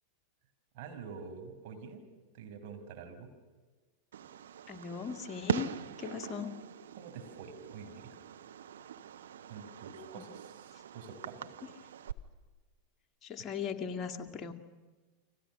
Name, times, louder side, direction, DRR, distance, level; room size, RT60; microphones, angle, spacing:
voice 1, 0.7-2.1 2.3-3.3 7.0-8.2 9.5-11.5, right 5 dB, 45° right, 4 dB, 5.4 m, -47 dB
Fireworks, 4.1-12.1, right 9 dB, 60° right, 1.3 m, -41 dB
voice 2, 4.7-5.7 6.0-6.6 10.1-10.2 13.2-14.5, left 7 dB, 25° left, 6 dB, 2.3 m, -38 dB
29.5 x 25.5 x 6.5 m, 1.3 s
figure-of-eight pair, 90°, 0 cm